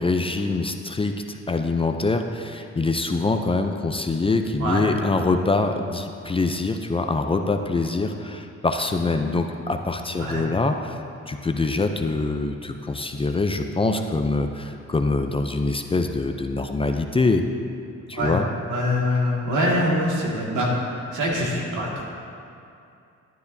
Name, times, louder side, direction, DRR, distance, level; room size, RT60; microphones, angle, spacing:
voice 1, 0.0-17.4 18.1-18.4, left 3 dB, 20° left, 5 dB, 0.5 m, -24 dB
voice 2, 18.7-22.1, left 1 dB, 80° right, -3 dB, 2.0 m, -24 dB
12.0 x 9.4 x 2.7 m, 2.5 s
cardioid pair, 90°, 30 cm